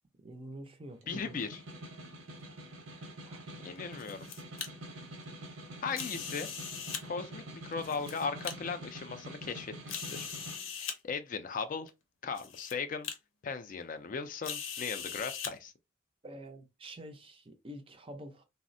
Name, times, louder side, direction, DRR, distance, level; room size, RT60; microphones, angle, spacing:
voice 1, 0.2-1.4 3.2-3.4 16.2-18.4, right 1 dB, 30° right, 0.4 m, -47 dB
Snare drum, 0.9-10.7, right 1 dB, 85° right, 0.8 m, -46 dB
voice 2, 1.1-1.6 3.6-4.3 5.8-6.5 7.0-10.3 10.8-11.9 12.2-13.1 13.4-15.7, left 5 dB, 40° left, 0.3 m, -37 dB
sound 1, 3.8-4.7 5.9-7.0 7.7-8.5 9.2-9.3 9.9-11.0 11.9-12.0 12.4-12.7 13.0-13.2 14.4-15.5, left 7 dB, 90° left, 0.6 m, -40 dB
3.3 x 2.0 x 2.5 m
head